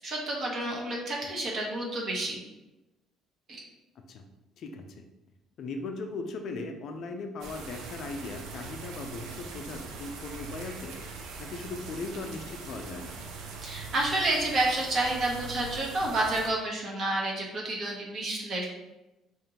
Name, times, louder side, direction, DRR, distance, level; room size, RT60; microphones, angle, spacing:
voice 1, 0.0-2.4 13.6-18.7, right 2 dB, 35° right, -2 dB, 0.8 m, -29 dB
voice 2, 4.6-5.0 5.6-10.9 11.4-13.2, left 3 dB, 45° left, 4 dB, 0.4 m, -38 dB
sound 1, 7.4-16.5, right 4 dB, 70° right, 0.5 m, -42 dB
5.0 x 2.5 x 2.9 m, 0.99 s
cardioid pair, 175°, 0 cm